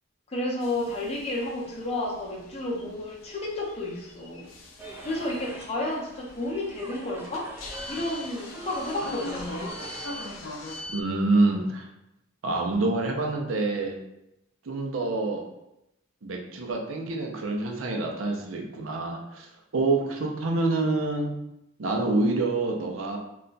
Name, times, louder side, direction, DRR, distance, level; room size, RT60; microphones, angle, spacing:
voice 1, 0.3-4.5 5.0-7.5 7.9-9.8, left 1 dB, 30° left, -3 dB, 0.6 m, -31 dB
sound 1, 0.6-11.0, left 2 dB, 85° left, 0.5 m, -42 dB
sound 2, 4.8-10.4, right 1 dB, 10° right, 0.3 m, -43 dB
voice 2, 10.9-11.9 12.4-14.0 14.7-15.4 16.2-19.5 19.7-21.4 21.8-23.2, right 2 dB, 90° right, 1 dB, 0.6 m, -26 dB
2.4 x 2.2 x 3.9 m, 0.86 s
head